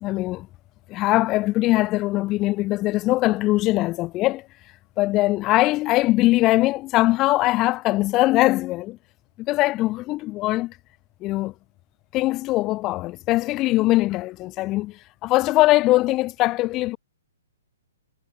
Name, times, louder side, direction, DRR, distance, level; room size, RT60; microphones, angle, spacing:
voice 1, 0.0-0.5 0.9-4.5 5.0-9.0 9.4-10.8 11.2-11.5 12.1-17.0, left 18 dB, 30° left, 1.1 m, -21 dB
hypercardioid pair, 135°, 0 cm